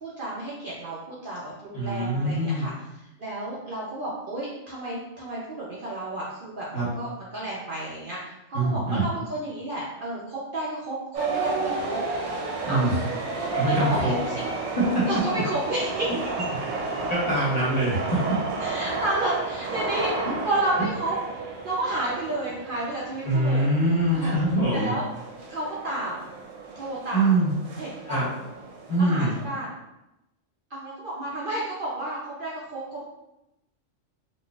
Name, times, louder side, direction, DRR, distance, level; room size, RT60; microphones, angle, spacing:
voice 1, 0.0-2.7 3.0-12.0 12.7-12.8 13.4-14.4 15.1-16.1 18.6-21.2 21.6-23.7 24.1-24.4 24.7-25.0 25.5-26.3 26.8-27.4 27.8-28.3 29.0-29.8 30.7-33.0, right 1 dB, 50° right, -6 dB, 0.7 m, -31 dB
voice 2, 1.7-2.7 6.7-6.9 8.5-9.1 12.6-12.9 13.5-14.1 14.9-15.0 17.1-18.2 23.2-24.9 27.1-27.5 28.1-28.3 28.9-29.3, right 1 dB, 35° left, -8 dB, 1.0 m, -23 dB
sound 1, 11.1-29.5, right 3 dB, 90° right, 1.0 m, -32 dB
4.0 x 2.4 x 2.3 m, 0.90 s
omnidirectional pair, 1.3 m